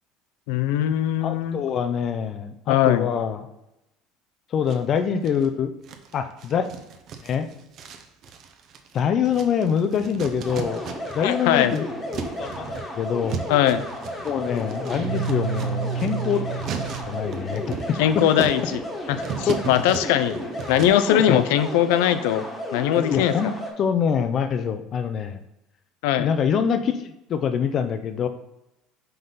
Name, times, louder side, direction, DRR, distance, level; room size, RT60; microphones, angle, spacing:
voice 1, 0.5-1.6 2.7-3.1 11.2-11.8 13.5-13.8 18.0-18.8 19.1-22.4 22.7-23.4 26.0-26.3, left 11 dB, 85° left, 12 dB, 0.5 m, -21 dB
voice 2, 1.2-3.4 4.5-5.7 6.1-6.7 7.2-7.5 8.9-10.8 11.1-11.8 12.4-13.4 14.2-16.6 17.0-18.5 19.5-19.6 21.1-21.4 23.0-25.4 26.2-28.3, left 7 dB, 35° left, 8 dB, 0.5 m, -25 dB
sound 1, 4.7-5.5 5.8-11.3 11.6-21.2, right 6 dB, 45° right, 0.8 m, -36 dB
sound 2, 10.4-23.7, left 1 dB, 10° left, 1.4 m, -34 dB
Guitar, 14.9-17.5, right 6 dB, 20° right, 2.1 m, -30 dB
5.7 x 5.4 x 3.9 m, 0.88 s
cardioid pair, 150°, 0 cm